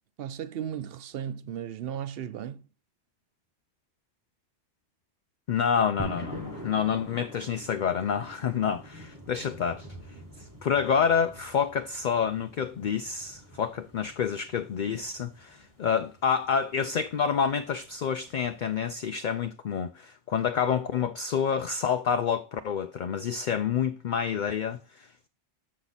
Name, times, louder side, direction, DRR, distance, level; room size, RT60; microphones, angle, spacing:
voice 1, 0.2-2.7, right 9 dB, 65° right, 0.7 m, -35 dB
voice 2, 5.5-9.9 10.4-25.3, left 7 dB, 55° left, 0.5 m, -28 dB
sound 1, 6.0-18.9, equal, 15° right, 1.5 m, -46 dB
7.3 x 6.5 x 4.0 m
omnidirectional pair, 1.2 m